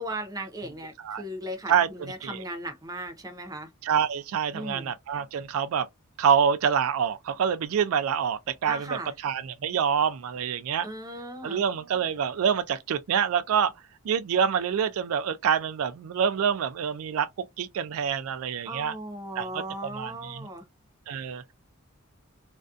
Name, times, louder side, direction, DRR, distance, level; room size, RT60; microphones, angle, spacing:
voice 1, 0.0-3.7 4.5-4.9 8.6-9.1 10.8-11.6 18.7-20.6, right 1 dB, 15° right, 0.6 m, -37 dB
voice 2, 3.8-5.9 6.2-9.0 9.2-10.9 11.4-13.7 14.0-17.3 17.6-18.9 19.4-19.6 19.9-20.4 21.1-21.4, right 7 dB, 75° right, 0.3 m, -26 dB
2.5 x 2.2 x 2.4 m
head